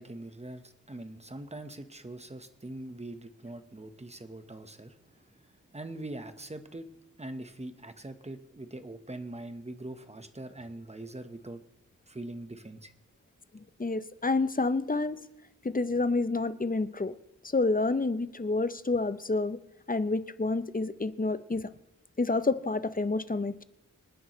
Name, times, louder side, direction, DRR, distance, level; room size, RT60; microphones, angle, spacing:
voice 1, 0.0-6.9 7.2-11.6 12.1-12.9, right 2 dB, 20° right, 8 dB, 1.1 m, -43 dB
voice 2, 13.5-15.2 15.6-17.1 17.4-19.6 19.9-21.7 22.2-23.6, left 3 dB, 25° left, 13 dB, 0.6 m, -29 dB
26.5 x 9.9 x 3.1 m, 0.92 s
wide cardioid pair, 90°, 32 cm